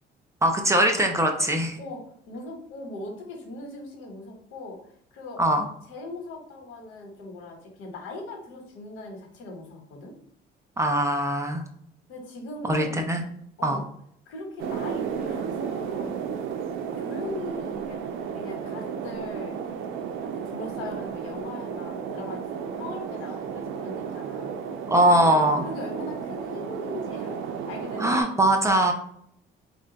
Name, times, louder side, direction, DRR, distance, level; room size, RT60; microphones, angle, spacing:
voice 1, 0.4-1.8 5.4-5.6 10.8-11.6 12.7-13.3 13.6-13.8 24.9-25.6 28.0-28.9, right 1 dB, 15° right, 3 dB, 0.4 m, -21 dB
voice 2, 1.8-5.4 5.9-10.1 12.1-13.1 13.6-13.8 14.3-16.1 17.0-18.0 18.3-19.6 20.2-24.6 25.6-28.5, left 2 dB, 85° left, 2 dB, 1.0 m, -39 dB
sound 1, 14.6-28.2, right 7 dB, 85° right, 0.5 m, -33 dB
3.5 x 2.2 x 3.8 m, 0.67 s
cardioid pair, 150°, 20 cm